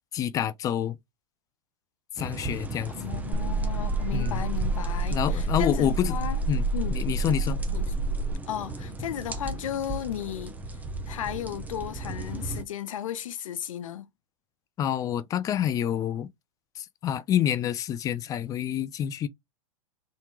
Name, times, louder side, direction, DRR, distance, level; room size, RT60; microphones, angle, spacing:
voice 1, 0.1-1.0 2.2-2.9 4.1-4.4 5.1-6.2 6.5-6.7 6.9-7.6 14.8-16.3 16.8-19.3, left 10 dB, 20° left, 0.4 m, -27 dB
sound 1, 2.2-12.6, right 2 dB, 10° right, 0.7 m, -38 dB
voice 2, 2.9-6.4 6.7-6.9 7.7-7.9 8.5-10.5 11.1-14.1, left 10 dB, 85° left, 0.8 m, -34 dB
sound 2, 3.3-8.3, right 3 dB, 35° right, 1.5 m, -28 dB
3.6 x 2.8 x 4.5 m
hypercardioid pair, 135°, 17 cm